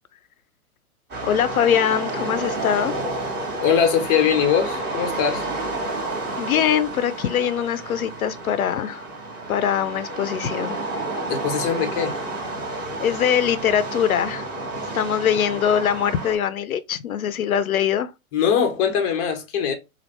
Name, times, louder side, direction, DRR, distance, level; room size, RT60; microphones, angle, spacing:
sound 1, 1.1-16.4, right 2 dB, 25° right, 1.5 m, -30 dB
voice 1, 1.2-2.9 6.4-9.0 9.5-10.8 13.0-14.5 14.9-18.1, left 9 dB, 75° left, 0.5 m, -22 dB
voice 2, 3.6-5.5 11.3-12.2 18.3-19.7, left 7 dB, 20° left, 0.6 m, -21 dB
3.1 x 2.4 x 3.0 m
figure-of-eight pair, 115°, 43 cm